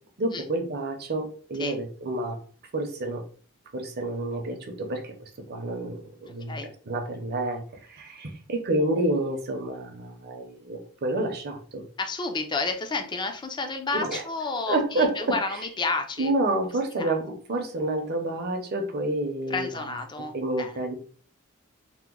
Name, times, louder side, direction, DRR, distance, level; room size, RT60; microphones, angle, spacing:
voice 1, 0.2-2.4 2.7-3.2 3.7-6.6 6.9-7.6 7.9-11.8 13.9-14.2 14.7-15.6 16.2-19.8 20.3-20.9, right 2 dB, 45° right, 4 dB, 0.6 m, -29 dB
voice 2, 12.0-16.3 17.0-17.2 19.5-20.8, left 3 dB, 20° left, 6 dB, 0.4 m, -31 dB
2.9 x 2.0 x 3.7 m, 0.43 s
head